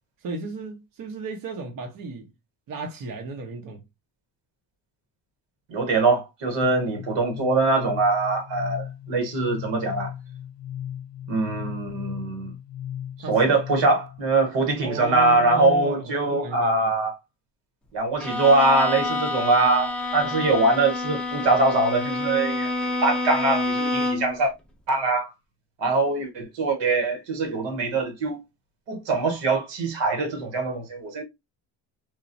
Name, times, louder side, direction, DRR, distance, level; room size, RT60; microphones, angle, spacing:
voice 1, 0.2-2.3 2.7-3.8 13.2-13.6 14.8-16.9, right 3 dB, 50° right, 0.8 m, -34 dB
voice 2, 5.7-10.1 11.3-12.5 13.3-17.2 17.9-24.5 24.9-25.3 25.8-28.4 28.9-31.2, right 3 dB, 85° right, 1.3 m, -23 dB
sound 1, 6.6-14.2, left 10 dB, 85° left, 0.6 m, -37 dB
Bowed string instrument, 18.2-24.4, left 2 dB, ahead, 0.4 m, -28 dB
3.0 x 2.3 x 2.5 m
cardioid pair, 140°, 43 cm